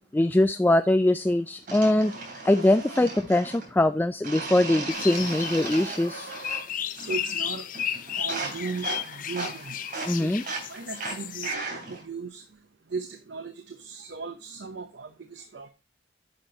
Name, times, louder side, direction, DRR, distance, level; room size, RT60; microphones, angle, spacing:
voice 1, 0.1-2.1 2.5-6.3 10.1-10.4, left 1 dB, 10° left, 0.3 m, -22 dB
sound 1, 1.7-3.7 4.2-6.7 7.0-7.4 7.7-12.0, right 3 dB, 50° right, 3.1 m, -36 dB
sound 2, 4.9-11.6, left 9 dB, 50° left, 0.6 m, -34 dB
voice 2, 6.9-7.7 8.2-9.8 10.2-10.4 10.7-12.4 12.9-15.7, right 4 dB, 75° right, 0.8 m, -37 dB
10.0 x 6.0 x 2.8 m
head